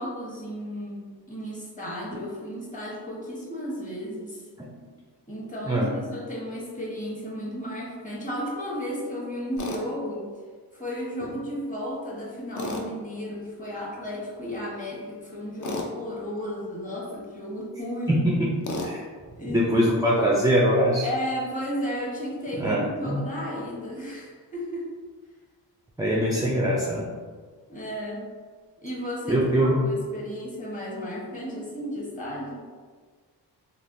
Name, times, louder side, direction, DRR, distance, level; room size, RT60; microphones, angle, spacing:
voice 1, 0.0-4.4 5.3-5.8 6.1-10.3 10.7-18.2 19.4-19.7 21.0-24.9 27.7-28.3 28.8-32.6, equal, 20° left, -5 dB, 1.1 m, -34 dB
voice 2, 5.6-6.0 18.1-19.1 19.4-21.1 22.6-23.2 26.0-27.1 29.3-29.9, equal, 10° right, -3 dB, 0.3 m, -23 dB
Tools, 9.6-9.8 12.6-12.9 15.6-15.9 18.6-18.9, left 2 dB, 45° left, 0.5 m, -31 dB
3.2 x 2.5 x 2.5 m, 1.5 s
cardioid pair, 80°, 42 cm